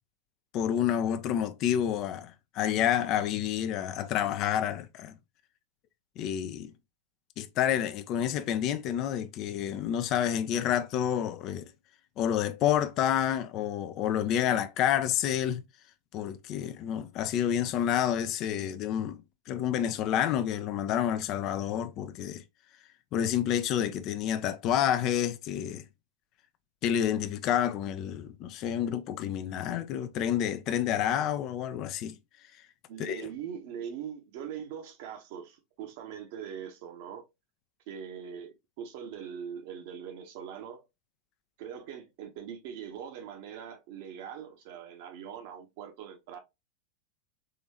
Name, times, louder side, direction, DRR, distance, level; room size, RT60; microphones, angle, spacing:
voice 1, 0.5-5.1 6.2-6.7 7.4-11.7 12.2-15.6 16.1-19.2 19.5-22.4 23.1-25.8 26.8-32.1 33.0-33.2, left 10 dB, 40° left, 0.4 m, -29 dB
voice 2, 32.9-37.3 37.9-40.8 41.6-46.4, right 8 dB, 50° right, 0.9 m, -42 dB
3.8 x 3.0 x 2.8 m
figure-of-eight pair, 90°, 0 cm